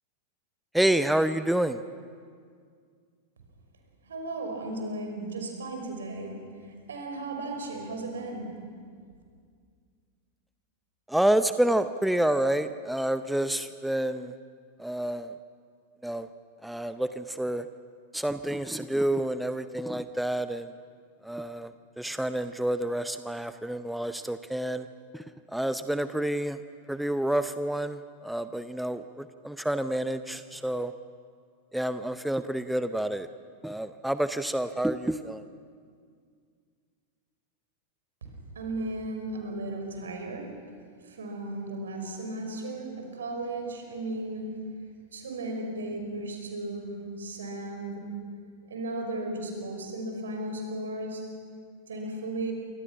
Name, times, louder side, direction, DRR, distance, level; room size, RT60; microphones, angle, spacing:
voice 1, 0.7-1.8 11.1-14.3 14.8-15.3 16.0-16.3 16.6-17.7 18.1-20.7 21.2-21.7 22.0-24.9 25.1-25.2 25.5-26.6 26.9-30.9 31.7-33.3 33.6-35.4, right 1 dB, ahead, 11 dB, 0.7 m, -28 dB
voice 2, 4.0-6.3 6.9-8.5 38.2-40.5 41.0-44.5 45.1-48.1 48.7-51.2 51.9-52.5, right 2 dB, 65° right, 3 dB, 5.5 m, -35 dB
28.0 x 25.0 x 6.1 m, 2.1 s
figure-of-eight pair, 90°, 0 cm